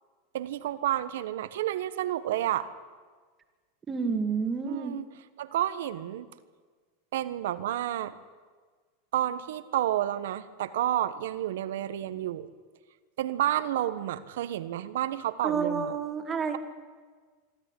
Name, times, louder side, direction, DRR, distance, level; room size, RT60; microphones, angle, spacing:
voice 1, 0.3-2.7 4.7-5.0 5.4-6.3 7.1-8.1 9.1-12.5 13.2-15.9, right 12 dB, 80° right, 14 dB, 1.3 m, -30 dB
voice 2, 3.9-5.0 15.4-16.6, right 5 dB, 20° right, 7 dB, 2.3 m, -29 dB
25.0 x 13.0 x 9.9 m, 1.5 s
supercardioid pair, 130°, 0 cm